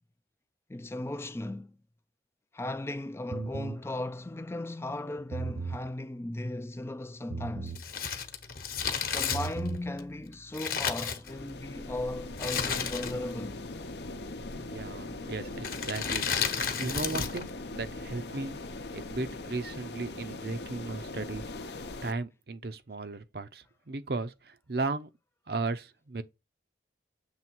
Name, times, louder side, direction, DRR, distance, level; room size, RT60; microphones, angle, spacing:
voice 1, 0.7-1.8 2.5-7.8 9.1-13.6, left 1 dB, 15° left, 0.3 m, -36 dB
sound 1, 3.3-3.8 5.2-5.8 7.3-7.8 9.2-9.8, right 4 dB, 85° right, 0.9 m, -36 dB
Crumpling crinkling, 7.7-11.7 12.4-13.4 13.6-13.7 14.6-14.9 15.6-17.5 17.8-17.9, left 6 dB, 50° left, 1.1 m, -32 dB
sound 2, 11.3-22.1, left 2 dB, 70° left, 0.8 m, -41 dB
voice 2, 14.6-16.3 16.8-21.7 22.0-25.1 25.5-26.2, right 3 dB, 55° right, 0.7 m, -36 dB
7.4 x 3.4 x 4.6 m
head